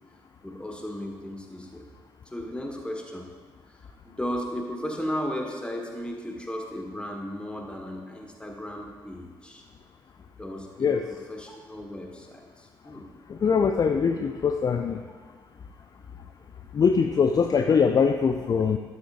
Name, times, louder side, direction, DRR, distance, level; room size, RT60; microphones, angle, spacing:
voice 1, 0.4-1.8 2.3-3.3 3.7-3.8 4.0-9.6 10.4-13.1, equal, 10° left, 1 dB, 1.6 m, -35 dB
voice 2, 13.3-15.0 16.7-18.8, left 6 dB, 35° left, 6 dB, 0.5 m, -22 dB
11.5 x 8.1 x 2.6 m, 1.4 s
figure-of-eight pair, 45°, 11 cm